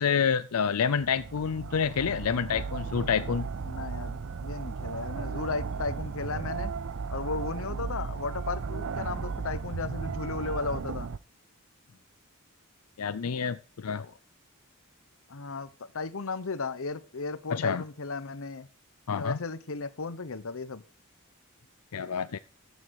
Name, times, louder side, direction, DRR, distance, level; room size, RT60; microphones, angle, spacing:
voice 1, 0.0-3.5 13.0-14.0 17.5-17.8 19.1-19.4 21.9-22.4, left 6 dB, 90° left, 0.5 m, -28 dB
sound 1, 1.0-11.2, right 5 dB, 60° right, 0.5 m, -35 dB
voice 2, 3.7-6.7 7.1-11.1 13.9-14.1 15.3-18.7 19.2-20.8, left 4 dB, 65° left, 0.9 m, -35 dB
14.0 x 8.5 x 4.7 m
head